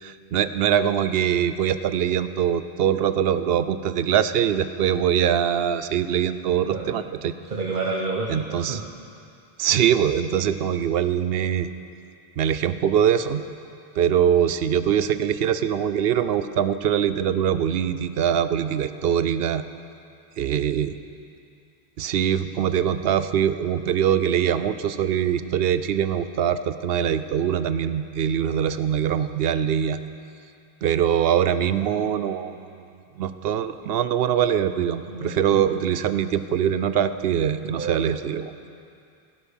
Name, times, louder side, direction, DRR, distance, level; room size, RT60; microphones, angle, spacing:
voice 1, 0.0-7.3 8.3-8.8 9.6-11.7 12.4-13.4 14.0-19.6 20.4-21.0 22.0-30.0 30.8-32.8 33.2-38.7, right 9 dB, 75° right, 12 dB, 0.8 m, -23 dB
voice 2, 7.5-8.8 35.1-35.6 37.6-38.0, right 3 dB, 50° right, -1 dB, 1.1 m, -29 dB
16.5 x 11.5 x 5.4 m, 2.5 s
omnidirectional pair, 1.0 m